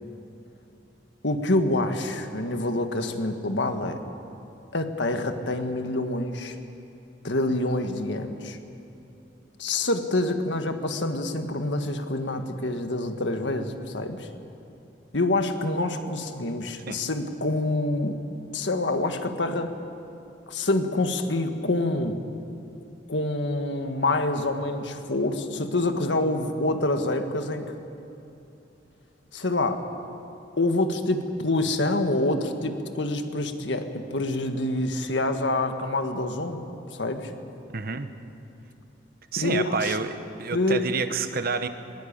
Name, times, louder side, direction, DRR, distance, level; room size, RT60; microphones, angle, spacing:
voice 1, 1.2-4.0 4.7-6.6 7.2-8.6 9.6-14.3 15.1-18.2 18.5-19.7 20.5-22.2 23.1-27.7 29.3-29.8 30.6-36.7 36.9-37.3 39.4-40.0 40.5-40.8, left 2 dB, 75° left, 7 dB, 1.6 m, -26 dB
voice 2, 37.7-38.1 39.3-41.7, right 4 dB, 55° right, 10 dB, 1.1 m, -29 dB
20.5 x 19.0 x 8.8 m, 2.7 s
head